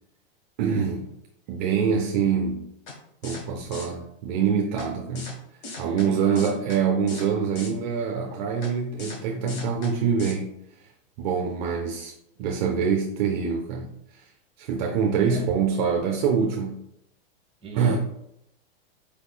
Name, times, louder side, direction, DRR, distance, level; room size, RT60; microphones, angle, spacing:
voice 1, 0.6-1.1 1.5-2.7 3.2-5.3 5.8-10.5 11.2-12.1 12.4-14.3 14.6-16.8 17.7-18.0, right 6 dB, 50° right, 1 dB, 0.6 m, -25 dB
sound 1, 2.9-3.0 3.2-3.4 3.7-3.9 4.8-4.9 5.2-5.3 5.6-6.1 6.4-6.8 7.1-7.3 7.6-7.7 8.6-8.7 9.0-9.2 9.5-9.9 10.2-10.3, left 2 dB, 45° left, 1.2 m, -37 dB
voice 2, 5.8-6.6 15.3-15.5 17.6-18.0, right 4 dB, 20° right, 0 dB, 1.2 m, -39 dB
4.6 x 3.5 x 2.3 m, 0.78 s
hypercardioid pair, 125°, 30 cm